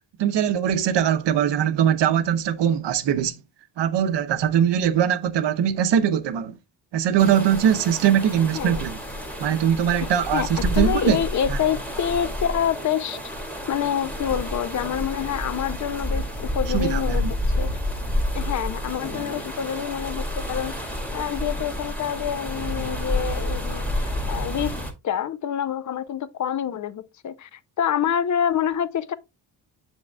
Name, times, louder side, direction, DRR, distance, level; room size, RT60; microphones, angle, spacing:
voice 1, 0.2-3.4 3.8-6.6 6.9-9.0 9.4-11.2 11.5-11.6 16.7-17.3, right 9 dB, 70° right, 0.8 m, -21 dB
sound 1, 7.2-24.9, left 1 dB, 5° left, 1.6 m, -29 dB
voice 2, 10.8-13.2 13.7-17.7 18.3-24.8 25.0-29.1, left 9 dB, 45° left, 0.5 m, -27 dB
7.1 x 6.2 x 2.2 m
cardioid pair, 110°, 44 cm